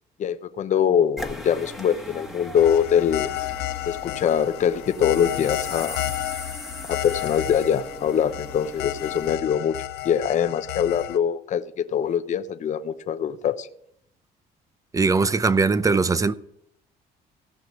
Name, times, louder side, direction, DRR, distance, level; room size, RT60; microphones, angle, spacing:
voice 1, 0.2-3.3 3.8-6.1 6.9-9.7 10.0-13.7, left 8 dB, 45° left, 0.7 m, -23 dB
sound 1, 1.2-9.4, equal, ahead, 1.4 m, -40 dB
sound 2, 2.5-11.2, left 15 dB, 85° left, 0.8 m, -32 dB
voice 2, 14.9-16.3, right 4 dB, 20° right, 0.6 m, -20 dB
16.0 x 5.9 x 5.9 m
cardioid pair, 110°, 17 cm